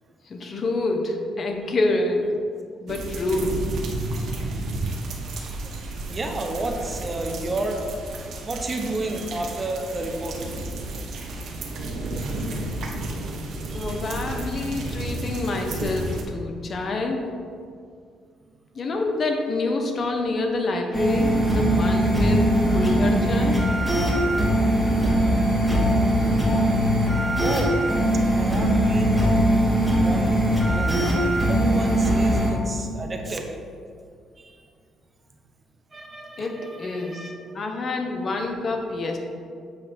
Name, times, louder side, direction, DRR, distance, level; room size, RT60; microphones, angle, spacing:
voice 1, 0.3-2.3 2.8-3.7 13.7-17.3 18.7-23.6 36.4-39.2, left 2 dB, 45° left, 3 dB, 0.9 m, -27 dB
sound 1, 2.9-16.2, right 2 dB, 65° right, 1.1 m, -32 dB
voice 2, 6.1-7.9 8.4-10.3 13.7-13.9 22.0-22.1 27.4-27.7 28.3-29.4 30.0-31.0 31.5-33.5 34.4-34.6 35.9-37.3, right 2 dB, 30° right, 3 dB, 0.9 m, -31 dB
sound 2, 20.9-32.5, equal, ahead, 1.7 m, -21 dB
7.7 x 3.2 x 6.0 m, 2.2 s
cardioid pair, 95°, 0 cm